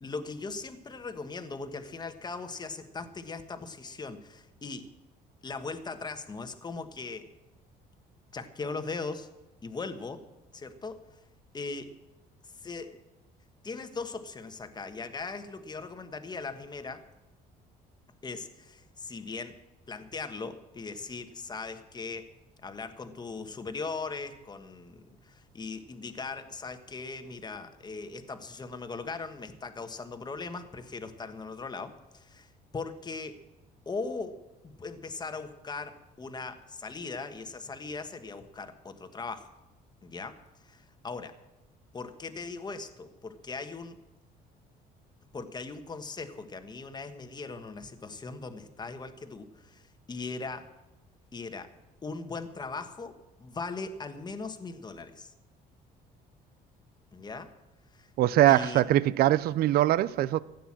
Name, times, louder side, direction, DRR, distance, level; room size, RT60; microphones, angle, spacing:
voice 1, 0.0-4.9 5.4-7.3 8.3-9.3 9.6-10.2 10.5-11.2 11.5-11.9 12.4-13.0 13.6-17.0 18.2-19.6 19.9-22.3 22.6-33.4 33.8-34.4 34.6-39.5 40.0-41.4 41.9-44.0 45.3-50.7 51.3-51.7 52.0-55.3 57.1-57.5 57.9-58.1 58.5-58.8, left 4 dB, 25° left, 1.3 m, -39 dB
voice 2, 58.2-60.4, right 14 dB, 65° right, 0.5 m, -22 dB
15.0 x 9.2 x 7.4 m
cardioid pair, 110°, 17 cm